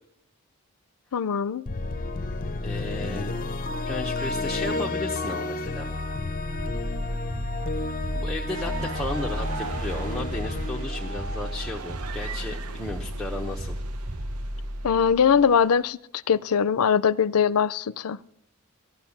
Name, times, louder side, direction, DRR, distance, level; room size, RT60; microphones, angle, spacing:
voice 1, 1.1-1.7 14.8-16.0 16.3-18.2, left 7 dB, 85° left, 0.5 m, -21 dB
sound 1, 1.7-11.8, left 3 dB, 40° left, 0.7 m, -31 dB
voice 2, 2.6-3.3 3.8-5.9 8.1-13.8, left 1 dB, ahead, 0.9 m, -34 dB
sound 2, 6.6-15.7, equal, 20° right, 0.5 m, -34 dB
sound 3, 8.5-15.8, right 5 dB, 85° right, 0.8 m, -40 dB
16.0 x 11.5 x 7.1 m
head